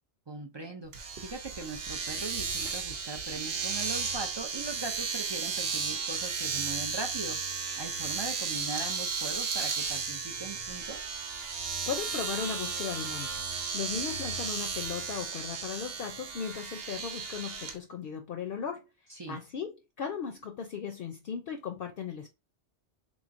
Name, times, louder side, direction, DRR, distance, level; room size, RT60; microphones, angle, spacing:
voice 1, 0.3-11.1 19.1-19.4, right 3 dB, 40° right, 0.4 m, -40 dB
Domestic sounds home sounds, 0.9-17.8, right 5 dB, 65° right, 0.9 m, -34 dB
voice 2, 11.5-13.4 13.7-18.9 19.3-22.3, left 7 dB, 60° left, 0.7 m, -37 dB
3.7 x 3.1 x 2.5 m
omnidirectional pair, 1.1 m